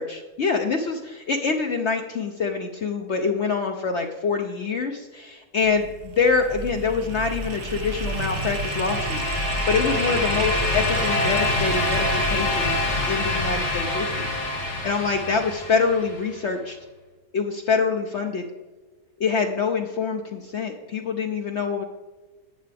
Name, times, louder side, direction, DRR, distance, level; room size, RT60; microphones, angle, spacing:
voice 1, 0.0-9.2 9.7-12.8 13.1-14.3 14.8-16.8 17.3-18.5 19.2-21.8, left 5 dB, 55° left, 3 dB, 0.9 m, -25 dB
sound 1, 5.6-14.7, right 3 dB, 85° right, 1.5 m, -32 dB
sound 2, 7.4-16.3, left 2 dB, 85° left, 3.5 m, -26 dB
11.5 x 8.5 x 3.4 m, 1.3 s
omnidirectional pair, 1.6 m